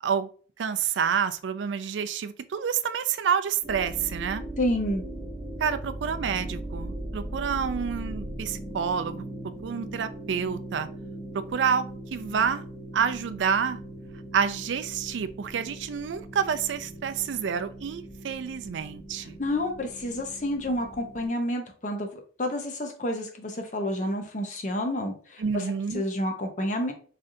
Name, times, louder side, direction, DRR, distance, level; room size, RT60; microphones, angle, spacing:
voice 1, 0.6-4.4 5.6-9.2 9.6-10.9 11.5-12.6 12.9-13.8 14.3-19.4 25.4-26.0, right 7 dB, 85° right, 11 dB, 0.4 m, -28 dB
sound 1, 3.6-21.3, right 1 dB, 15° right, 0.8 m, -39 dB
voice 2, 4.6-5.0 19.4-22.1 22.4-25.6 25.9-26.9, left 1 dB, 40° left, 3 dB, 0.7 m, -29 dB
3.8 x 3.2 x 2.6 m, 0.43 s
head